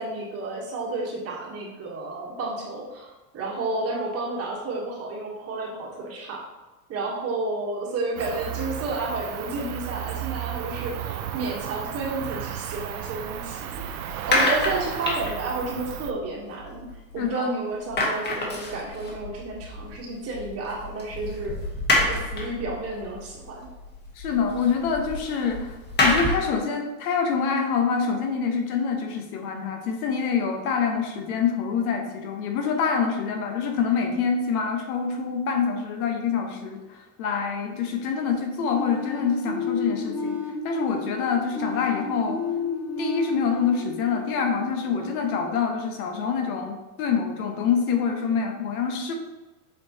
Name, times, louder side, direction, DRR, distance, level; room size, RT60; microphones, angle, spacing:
voice 1, 0.0-6.4 6.9-14.0 14.3-16.8 17.1-21.6 22.0-23.7, right 2 dB, 35° right, -2 dB, 1.3 m, -31 dB
Cricket, 8.2-16.1, right 11 dB, 80° right, 0.7 m, -34 dB
sound 1, 12.8-17.4 17.7-26.6, left 2 dB, 25° left, 1.5 m, -29 dB
voice 2, 17.2-17.5 24.2-42.4 43.0-49.1, left 6 dB, 75° left, 4 dB, 1.3 m, -26 dB
sound 2, 38.7-45.5, left 4 dB, 10° left, 0.5 m, -32 dB
7.1 x 4.5 x 2.9 m, 1.1 s
supercardioid pair, 140°, 43 cm